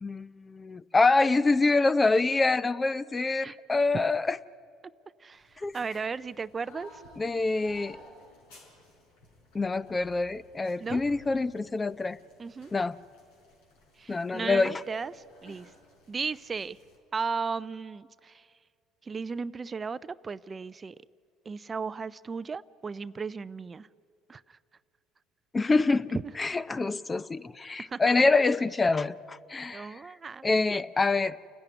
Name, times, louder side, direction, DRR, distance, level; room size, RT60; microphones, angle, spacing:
voice 1, 0.0-4.4 5.6-5.7 7.2-8.0 9.5-12.2 12.7-13.0 14.1-14.8 25.5-30.0 30.4-31.3, left 3 dB, 25° left, 16 dB, 0.6 m, -26 dB
voice 2, 5.2-7.0 10.8-11.0 12.4-12.7 14.0-15.7 16.1-16.8 17.1-18.5 19.0-21.0 21.5-23.9 24.3-24.6 27.8-28.0 29.7-30.8, right 5 dB, 30° right, 16 dB, 0.4 m, -36 dB
sound 1, 5.3-17.0, left 1 dB, 80° left, 5.0 m, -53 dB
29.0 x 10.5 x 9.9 m, 2.3 s
supercardioid pair, 80°, 0 cm